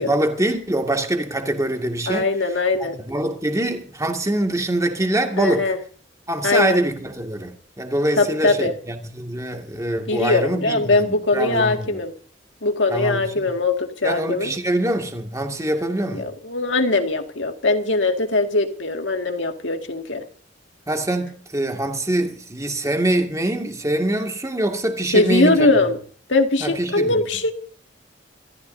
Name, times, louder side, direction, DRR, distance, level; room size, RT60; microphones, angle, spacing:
voice 1, 0.0-2.3 2.8-5.7 6.3-12.0 12.9-13.5 14.0-16.3 20.9-25.7 26.6-27.2, right 1 dB, 20° right, 2.2 m, -24 dB
voice 2, 2.1-3.0 5.4-5.8 6.4-6.8 8.2-8.7 10.1-12.1 12.6-14.5 16.1-20.2 25.1-26.0 26.3-27.5, left 2 dB, 75° left, 2.1 m, -21 dB
27.5 x 14.5 x 2.8 m
head